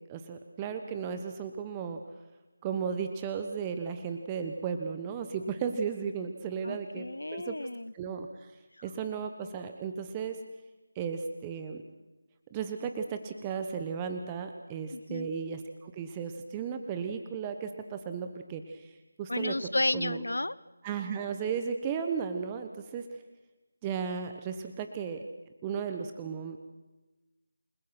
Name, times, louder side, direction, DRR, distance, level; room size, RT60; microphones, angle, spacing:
voice 1, 0.1-2.0 2.6-7.6 7.9-8.5 8.8-10.4 10.9-11.8 12.5-19.6 19.9-20.2 20.8-23.1 23.8-25.2 25.6-26.6, right 6 dB, 15° right, 7 dB, 1.3 m, -35 dB
voice 2, 6.6-7.9 14.9-15.3 19.3-20.5, left 1 dB, 75° left, 18 dB, 0.7 m, -32 dB
29.0 x 20.5 x 6.0 m, 1.1 s
figure-of-eight pair, 160°, 0 cm